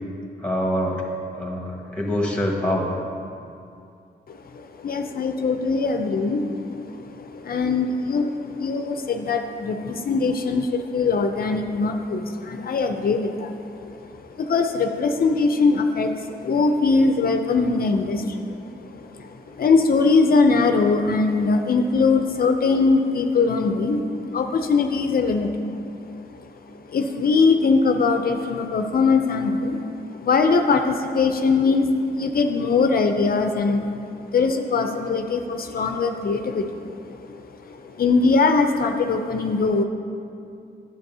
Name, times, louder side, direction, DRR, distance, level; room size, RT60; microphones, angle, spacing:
voice 1, 0.4-1.1 1.3-2.9, left 1 dB, 5° left, -1 dB, 1.4 m, -25 dB
voice 2, 4.3-26.0 26.3-34.1 34.3-39.8, left 4 dB, 55° left, 5 dB, 0.5 m, -22 dB
10.5 x 7.4 x 2.7 m, 2.5 s
cardioid pair, 80°, 18 cm